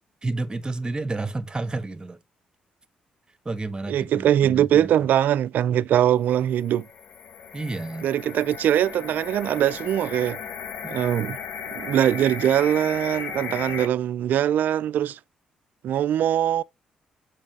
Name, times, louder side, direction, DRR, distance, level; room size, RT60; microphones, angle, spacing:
voice 1, 0.2-2.2 3.4-4.9 7.5-8.1 10.8-11.0, right 2 dB, 25° right, 1.5 m, -30 dB
voice 2, 3.9-6.9 8.0-10.4 10.8-11.4 11.7-15.2 15.8-16.6, right 11 dB, 70° right, 0.4 m, -22 dB
sound 1, 6.4-13.9, left 7 dB, 70° left, 1.2 m, -36 dB
7.2 x 4.9 x 4.7 m
hypercardioid pair, 50°, 3 cm